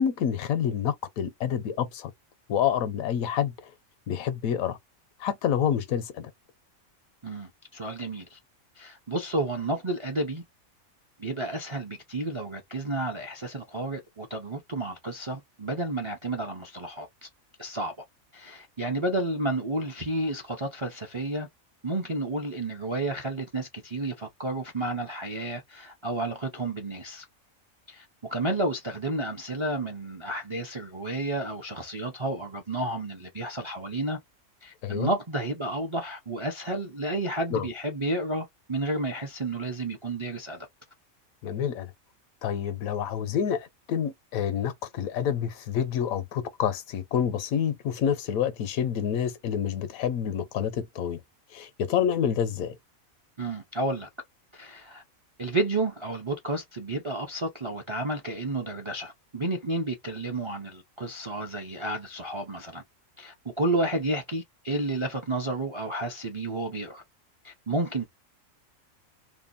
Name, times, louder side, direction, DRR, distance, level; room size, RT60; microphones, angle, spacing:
voice 1, 0.0-2.1 2.5-3.5 4.1-4.8 5.2-6.3 34.8-35.1 37.5-37.7 41.4-41.9 42.4-51.2 51.5-52.7, left 8 dB, 85° left, 1.1 m, -28 dB
voice 2, 7.2-8.4 8.8-10.4 11.2-17.3 17.6-17.9 18.3-21.5 21.8-27.2 27.9-34.2 34.6-40.7 53.4-54.1 54.5-55.0 55.4-62.8 63.2-67.0 67.4-68.1, right 2 dB, 50° right, 0.3 m, -31 dB
2.8 x 2.1 x 2.5 m
omnidirectional pair, 1.4 m